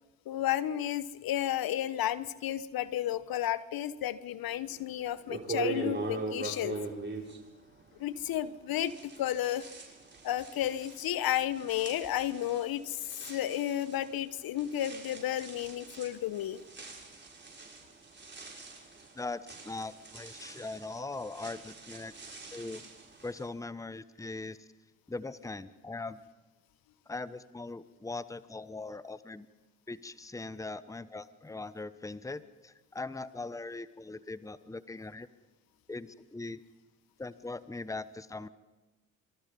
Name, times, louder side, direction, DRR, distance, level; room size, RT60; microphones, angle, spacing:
voice 1, 0.3-6.8 8.0-9.7 10.2-13.0 13.3-16.6, left 12 dB, 55° left, 16 dB, 1.1 m, -32 dB
sound 1, 4.7-4.8 5.3-8.4 8.7-23.5, right 3 dB, 25° right, 6.6 m, -42 dB
voice 2, 19.2-22.1 22.5-22.8 23.2-24.6 25.1-26.2 27.1-29.5 29.9-35.3 35.9-36.6 37.2-38.5, left 3 dB, 10° left, 15 dB, 1.1 m, -40 dB
26.0 x 24.5 x 5.5 m, 1.2 s
hypercardioid pair, 50°, 41 cm